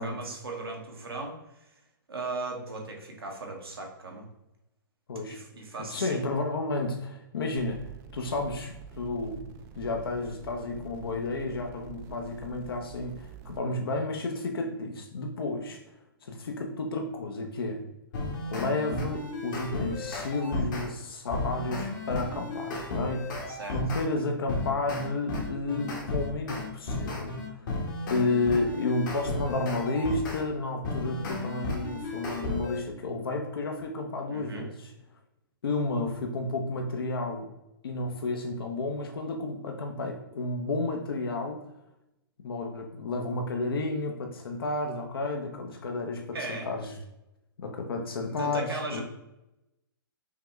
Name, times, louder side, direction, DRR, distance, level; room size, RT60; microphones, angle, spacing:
voice 1, 0.0-1.7 2.1-4.3 5.2-6.2 23.5-23.8 34.3-34.7 46.3-46.7 48.4-49.0, right 3 dB, 85° right, 1 dB, 1.2 m, -37 dB
voice 2, 5.1-5.4 5.8-7.8 8.1-9.5 9.7-15.8 16.2-17.8 18.5-23.4 23.7-27.6 28.1-34.9 35.6-37.5 37.8-41.6 42.4-46.9 47.6-49.0, left 2 dB, 75° left, 3 dB, 0.8 m, -31 dB
sound 1, 7.6-13.6, right 7 dB, 25° right, 0.3 m, -47 dB
sound 2, 18.1-20.9 21.3-24.1 24.5-30.4 30.8-32.8, left 2 dB, 55° left, 1.1 m, -34 dB
5.7 x 2.3 x 3.1 m, 0.90 s
hypercardioid pair, 130°, 12 cm